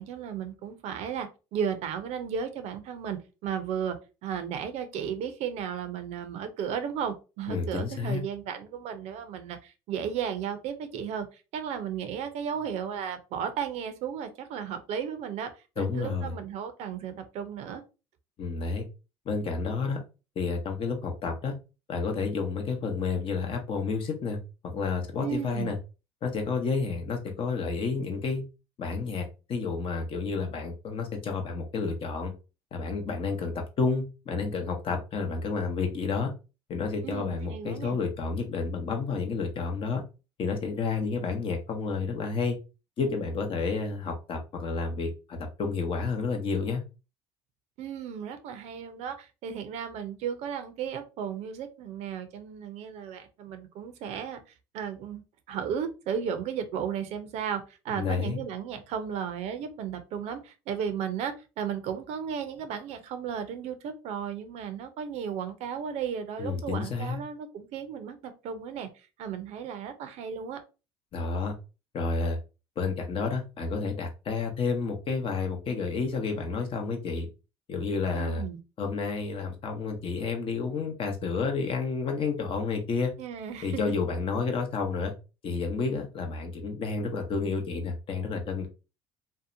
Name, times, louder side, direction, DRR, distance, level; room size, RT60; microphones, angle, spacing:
voice 1, 0.0-4.0 4.2-11.3 11.5-15.5 15.8-17.8 25.2-25.7 37.0-38.0 47.8-54.4 54.7-55.2 55.5-68.9 69.2-70.6 78.1-78.6 83.2-84.0, right 8 dB, 65° right, 9 dB, 0.5 m, -34 dB
voice 2, 7.5-8.2 15.8-16.3 18.4-18.8 19.3-20.0 20.4-21.5 21.9-24.4 24.6-25.8 26.2-28.4 28.8-32.3 32.7-36.3 36.7-40.0 40.4-42.6 43.0-46.8 57.9-58.4 66.4-67.2 71.1-71.5 71.9-72.4 72.8-77.3 77.7-78.4 78.8-83.1 83.6-85.1 85.4-88.7, left 4 dB, 50° left, 3 dB, 0.7 m, -30 dB
2.7 x 2.1 x 2.5 m, 0.30 s
supercardioid pair, 85°, 12 cm